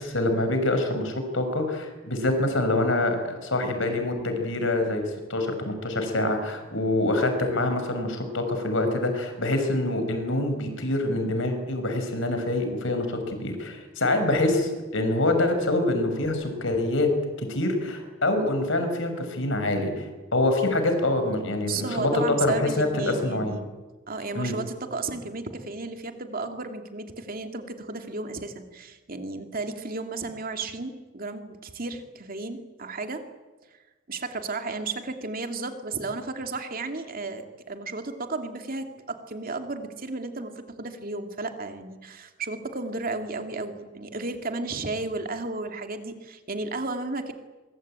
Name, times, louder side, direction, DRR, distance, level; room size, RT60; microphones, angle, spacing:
voice 1, 0.0-17.1 17.4-20.0 20.3-22.1 22.4-23.6 24.3-24.5, left 2 dB, 65° left, 6 dB, 6.0 m, -25 dB
voice 2, 21.7-23.7 24.1-33.2 34.1-47.3, right 3 dB, 45° right, 5 dB, 2.8 m, -33 dB
24.5 x 23.0 x 9.0 m, 1.2 s
head